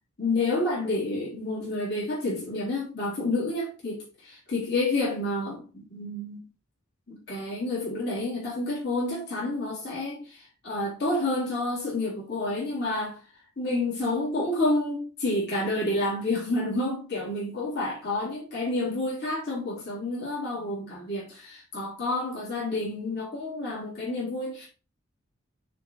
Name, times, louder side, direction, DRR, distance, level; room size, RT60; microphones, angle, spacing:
voice 1, 0.2-6.4 7.1-13.2 13.6-24.7, left 2 dB, 55° left, 3.4 m, -29 dB
9.5 x 4.0 x 3.1 m
head